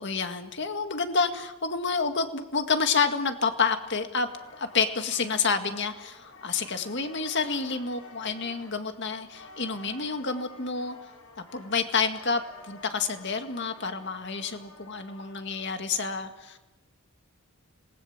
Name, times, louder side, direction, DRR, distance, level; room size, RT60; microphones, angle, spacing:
voice 1, 0.0-4.3 4.6-10.9 11.5-16.6, left 5 dB, 55° left, 7 dB, 2.0 m, -29 dB
sound 1, 4.2-15.9, left 2 dB, 80° left, 6.5 m, -50 dB
26.5 x 20.0 x 7.4 m, 1.1 s
head